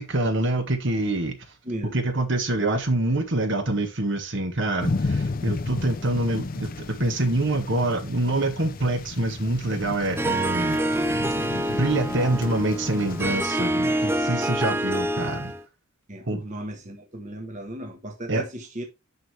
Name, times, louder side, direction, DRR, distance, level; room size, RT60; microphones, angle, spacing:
voice 1, 0.0-1.3 1.9-6.7 7.0-10.8 11.7-15.5 16.3-16.4 18.3-18.4, right 2 dB, 55° right, 1.6 m, -25 dB
voice 2, 1.6-2.0 16.1-18.8, right 1 dB, 35° right, 1.3 m, -36 dB
sound 1, 4.8-13.4, left 3 dB, 40° left, 0.5 m, -33 dB
Harp, 10.2-15.6, right 1 dB, 10° right, 0.5 m, -26 dB
10.5 x 4.6 x 3.3 m
head